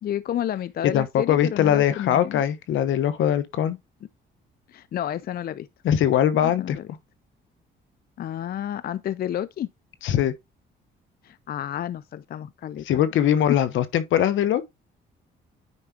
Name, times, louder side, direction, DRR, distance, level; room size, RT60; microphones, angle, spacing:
voice 1, 0.0-2.4 4.7-5.7 6.3-6.9 8.2-9.7 11.2-13.0, left 11 dB, 50° left, 0.4 m, -31 dB
voice 2, 0.8-3.8 5.8-6.8 10.0-10.3 12.9-14.6, left 10 dB, 80° left, 1.0 m, -21 dB
9.7 x 4.8 x 2.8 m
cardioid pair, 90°, 20 cm